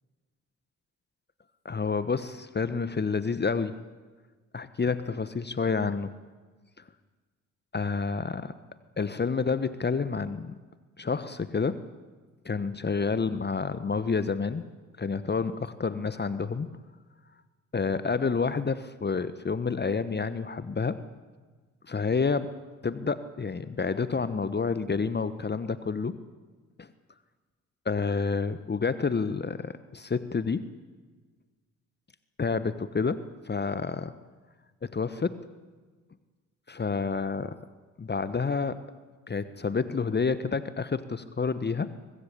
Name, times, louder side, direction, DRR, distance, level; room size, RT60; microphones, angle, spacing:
voice 1, 1.6-3.8 4.5-6.1 6.8-6.9 7.7-8.5 9.0-10.6 11.0-11.8 12.4-14.6 15.0-16.7 17.7-21.0 21.9-22.5 22.8-26.2 26.8-26.9 27.8-30.6 32.4-34.1 34.8-35.4 36.7-37.6 38.0-38.8 39.3-41.9, left 5 dB, 25° left, 14 dB, 1.2 m, -29 dB
24.0 x 19.5 x 8.6 m, 1.4 s
figure-of-eight pair, 40°, 38 cm